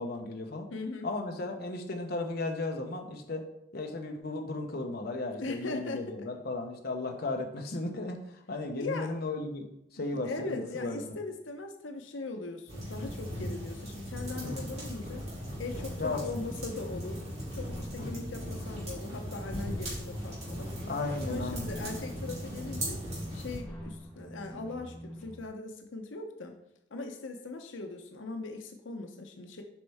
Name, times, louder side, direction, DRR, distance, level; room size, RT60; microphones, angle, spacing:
voice 1, 0.0-0.7 1.0-3.4 3.7-9.7 9.9-11.2 14.4-14.7 16.0-16.4 18.0-18.3 20.9-21.7, left 2 dB, 55° left, 3 dB, 0.9 m, -35 dB
voice 2, 0.7-1.1 5.4-6.0 8.8-9.1 10.2-15.2 15.6-17.2 17.5-20.7 21.2-23.0 23.3-26.5 26.9-29.6, left 3 dB, 85° left, 5 dB, 0.8 m, -39 dB
sound 1, 12.7-23.6, equal, 35° right, 2.9 m, -38 dB
sound 2, 15.8-25.5, equal, 10° left, 1.7 m, -46 dB
7.5 x 5.4 x 3.5 m, 0.82 s
head